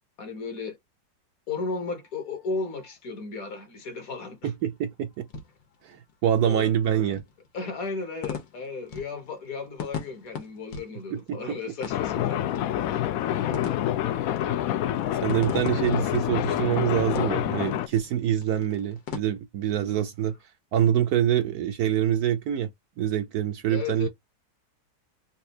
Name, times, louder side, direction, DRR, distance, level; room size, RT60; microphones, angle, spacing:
voice 1, 0.2-0.8 1.5-4.5 6.4-6.7 7.5-12.4 13.3-13.6 23.7-24.1, left 4 dB, 55° left, 1.3 m, -34 dB
sound 1, 1.9-19.2, left 7 dB, 90° left, 1.8 m, -42 dB
voice 2, 4.4-5.3 5.8-7.2 11.1-11.6 15.2-20.4 20.7-22.7 23.0-24.1, right 10 dB, 70° right, 0.9 m, -25 dB
sound 2, 11.9-17.9, left 12 dB, 75° left, 0.8 m, -27 dB
4.1 x 2.3 x 2.7 m
omnidirectional pair, 1.9 m